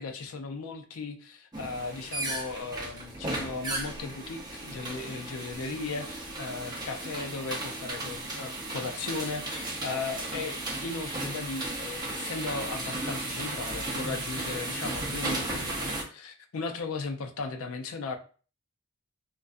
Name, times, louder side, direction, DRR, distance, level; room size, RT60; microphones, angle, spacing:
voice 1, 0.0-18.2, left 4 dB, 85° left, 6 dB, 0.4 m, -36 dB
sound 1, 1.5-16.0, right 2 dB, 20° right, 0.5 m, -35 dB
2.4 x 2.1 x 2.4 m, 0.39 s
head